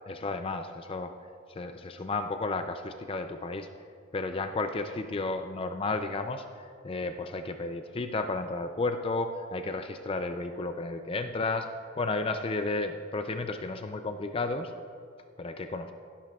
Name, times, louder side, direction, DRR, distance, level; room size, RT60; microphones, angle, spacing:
voice 1, 0.1-1.1 1.5-3.7 4.1-11.7 12.0-14.7 15.4-15.9, left 3 dB, 25° left, 7 dB, 0.4 m, -32 dB
17.0 x 10.5 x 2.4 m, 2.4 s
head